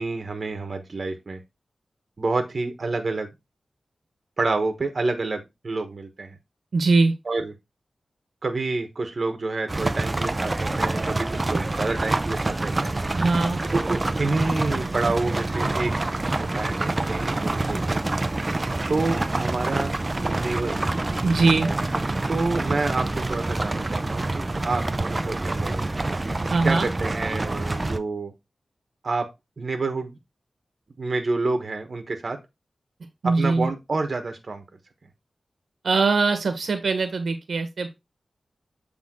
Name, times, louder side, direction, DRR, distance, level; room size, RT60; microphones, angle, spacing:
voice 1, 0.0-1.4 2.2-3.3 4.4-6.4 7.2-7.5 8.4-13.0 13.7-15.9 16.4-18.0 18.9-20.9 22.3-25.9 26.6-28.3 29.0-29.3 29.6-30.2 31.0-32.4 33.2-34.6, right 3 dB, 55° right, 6 dB, 1.2 m, -28 dB
voice 2, 6.7-7.1 13.1-13.6 21.2-21.7 26.5-26.9 33.2-33.7 35.8-37.9, right 3 dB, 80° right, 8 dB, 1.3 m, -21 dB
sound 1, 9.7-28.0, right 2 dB, 30° right, 0.6 m, -26 dB
7.7 x 3.5 x 3.7 m, 0.20 s
wide cardioid pair, 75°, 0 cm